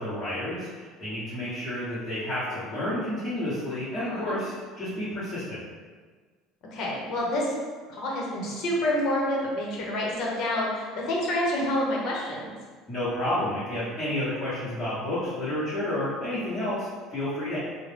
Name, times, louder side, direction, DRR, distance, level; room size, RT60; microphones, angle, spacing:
voice 1, 0.0-5.6 12.9-17.6, left 1 dB, 20° left, -13 dB, 1.0 m, -30 dB
voice 2, 3.9-4.3 6.7-7.5 7.9-12.5, left 1 dB, 55° left, -3 dB, 0.9 m, -28 dB
3.8 x 2.1 x 3.3 m, 1.5 s
cardioid pair, 140°, 0 cm